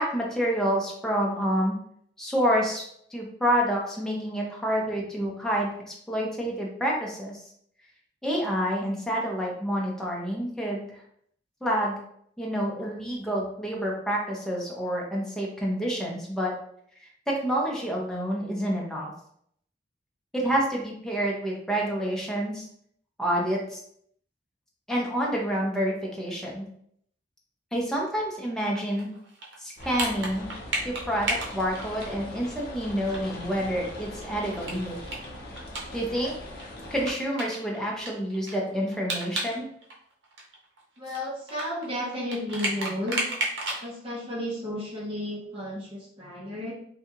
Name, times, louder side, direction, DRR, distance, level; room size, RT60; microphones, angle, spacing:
voice 1, 0.0-1.7 2.2-7.4 8.2-11.0 11.6-12.0 12.4-16.5 17.3-19.1 20.3-22.7 23.2-23.8 24.9-26.7 27.7-29.1 29.6-30.5 30.8-35.0 35.9-36.3 36.9-39.7, equal, 5° left, -3 dB, 0.6 m, -28 dB
sound 1, 28.7-32.5 32.8-32.9 33.1-33.2 33.6-36.3 36.6-36.7 37.1-39.6 39.8-43.8, right 2 dB, 85° right, 0.7 m, -33 dB
sound 2, 29.8-37.1, left 1 dB, 60° left, 0.7 m, -41 dB
voice 2, 41.0-43.3 43.8-46.7, left 1 dB, 30° right, -5 dB, 0.7 m, -33 dB
2.7 x 2.3 x 2.8 m, 0.66 s
head